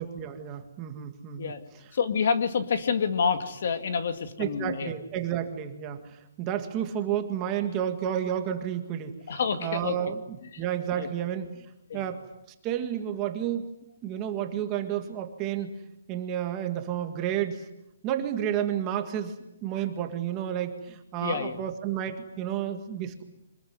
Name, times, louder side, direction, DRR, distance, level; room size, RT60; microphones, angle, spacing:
voice 1, 0.0-1.5 4.4-9.2 9.6-10.2 10.6-11.7 11.9-12.2 12.6-13.7 14.0-15.8 16.1-17.6 18.0-23.2, right 10 dB, 15° right, 6 dB, 1.7 m, -31 dB
voice 2, 1.9-4.9 9.3-10.0 10.5-10.6 10.9-11.1 11.9-12.1 21.2-21.6, left 6 dB, 50° left, 9 dB, 2.2 m, -28 dB
26.0 x 20.5 x 9.5 m, 0.87 s
hypercardioid pair, 175°, 0 cm